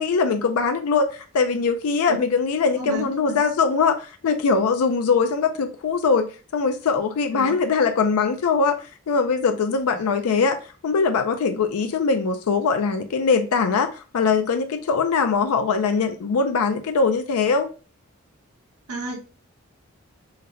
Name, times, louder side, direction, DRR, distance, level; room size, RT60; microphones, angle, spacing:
voice 1, 0.0-8.8 9.1-10.6 10.8-17.7, left 5 dB, 85° left, 0.4 m, -22 dB
voice 2, 2.8-3.4 7.3-7.5 9.9-10.0 18.9-19.2, right 2 dB, 90° right, 1.3 m, -32 dB
3.9 x 2.2 x 3.8 m
head